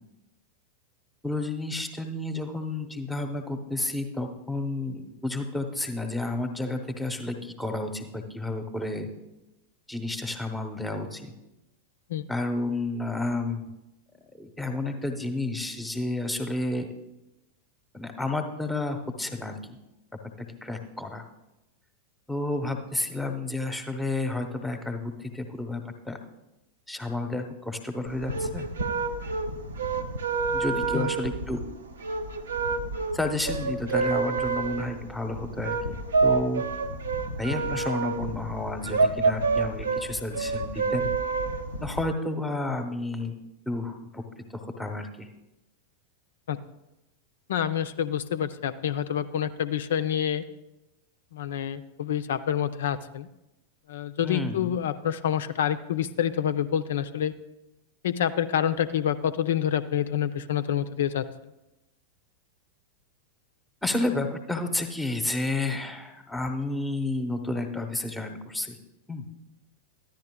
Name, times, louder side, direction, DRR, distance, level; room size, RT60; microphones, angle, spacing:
voice 1, 1.2-9.1 9.9-11.2 12.3-13.7 14.4-16.9 17.9-19.6 20.6-21.2 22.3-26.2 26.9-28.7 30.5-31.6 33.1-36.0 36.2-36.7 37.4-41.1 41.8-43.3 43.7-44.2 44.5-45.3 54.2-54.7 63.8-68.7 69.1-69.2, left 2 dB, 5° left, 5 dB, 0.9 m, -31 dB
sound 1, 28.1-42.0, right 4 dB, 70° right, 0.7 m, -28 dB
voice 2, 47.5-50.4 51.3-53.3 53.9-57.3 58.0-61.5, left 9 dB, 60° left, 12 dB, 0.4 m, -27 dB
13.5 x 10.5 x 2.3 m, 0.95 s
figure-of-eight pair, 90°, 0 cm